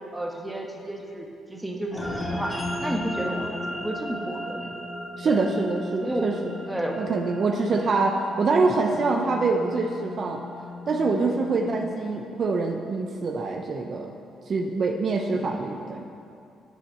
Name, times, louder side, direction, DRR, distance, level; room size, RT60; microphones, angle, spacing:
voice 1, 0.1-4.7 5.2-5.4 6.0-6.3 6.7-7.0 7.6-7.7 11.6-11.9 15.3-15.6, right 1 dB, 10° right, 1 dB, 1.2 m, -32 dB
sound 1, 1.9-12.5, left 1 dB, 10° left, 1.6 m, -36 dB
voice 2, 5.2-6.4 7.0-10.4 10.9-14.1 14.5-16.1, right 3 dB, 50° right, 3 dB, 0.6 m, -25 dB
8.5 x 6.3 x 6.9 m, 2.5 s
cardioid pair, 90°, 0 cm